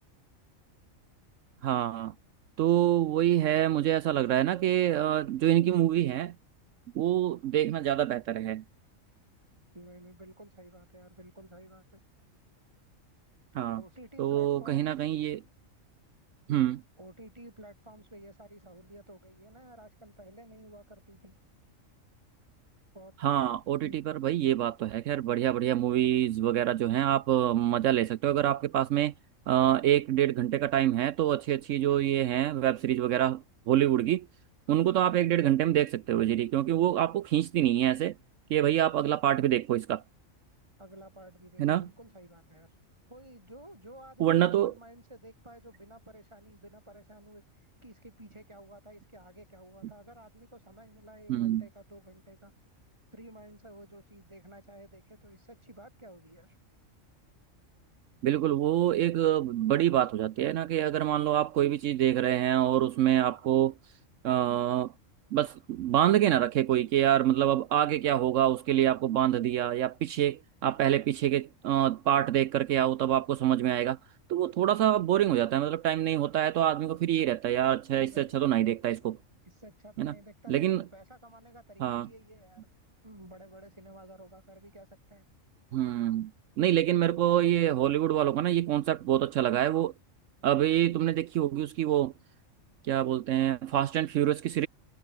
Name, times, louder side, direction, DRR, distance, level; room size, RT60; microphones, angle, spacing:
voice 1, 1.6-2.1 2.6-6.4 6.9-8.6 13.5-13.8 14.2-15.4 16.5-16.8 23.2-29.1 29.5-34.3 34.7-38.2 38.5-40.0 41.6-41.9 44.2-44.7 51.3-51.7 58.2-63.7 64.2-64.9 65.3-74.0 74.3-79.2 80.0-80.1 80.5-80.8 81.8-82.1 85.7-86.3 86.6-89.9 90.4-92.1 92.8-94.7, right 12 dB, 75° right, 1.0 m, -26 dB
voice 2, 9.7-11.8 13.7-15.1 17.0-21.4 22.9-23.1 23.8-24.0 40.8-42.8 43.1-52.5 53.1-56.6 77.9-78.5 79.4-82.7 83.0-85.2, right 1 dB, 20° right, 4.6 m, -52 dB
omnidirectional pair, 1.4 m